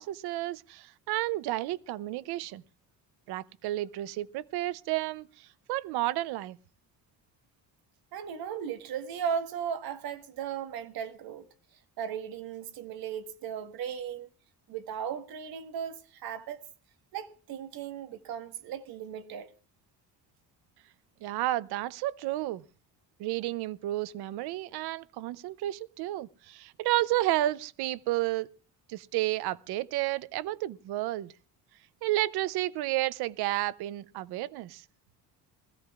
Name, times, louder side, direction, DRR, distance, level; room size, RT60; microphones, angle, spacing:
voice 1, 0.0-2.6 3.3-6.6 21.2-22.6 23.2-28.5 28.9-31.3 32.0-34.8, right 16 dB, 85° right, 0.6 m, -31 dB
voice 2, 8.1-11.5 12.0-14.3 14.7-16.7 17.1-19.5, right 8 dB, 70° right, 1.4 m, -36 dB
20.5 x 15.5 x 2.4 m
cardioid pair, 140°, 38 cm